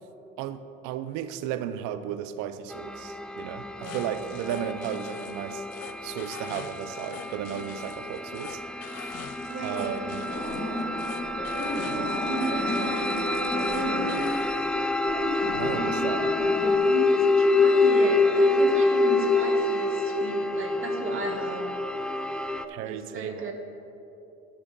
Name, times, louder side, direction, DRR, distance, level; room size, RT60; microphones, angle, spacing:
voice 1, 0.4-5.7 6.0-9.1 9.6-10.3 11.9-12.2 15.5-16.3 22.7-23.5, right 10 dB, 75° right, 12 dB, 0.5 m, -35 dB
sound 1, 2.7-22.6, left 3 dB, 5° left, 0.4 m, -27 dB
sound 2, 3.8-14.6, left 9 dB, 55° left, 0.6 m, -44 dB
voice 2, 3.8-4.2 9.4-10.0 12.1-14.3 16.8-21.7 22.9-23.5, right 4 dB, 45° right, 2 dB, 1.5 m, -35 dB
sound 3, 10.3-16.8, equal, 30° left, 2.1 m, -33 dB
11.0 x 6.4 x 4.0 m, 2.9 s
supercardioid pair, 75°, 30 cm